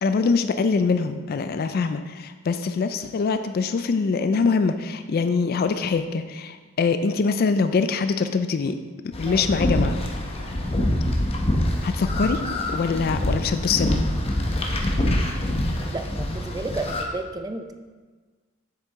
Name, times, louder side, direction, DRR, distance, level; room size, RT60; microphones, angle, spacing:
voice 1, 0.0-8.8 9.2-10.0 11.8-14.0, left 4 dB, 50° left, 9 dB, 0.3 m, -23 dB
sound 1, 9.1-17.0, left 1 dB, 30° left, 0.8 m, -25 dB
voice 2, 15.9-17.7, right 2 dB, 20° right, 7 dB, 0.4 m, -32 dB
7.6 x 6.7 x 3.6 m, 1.4 s
head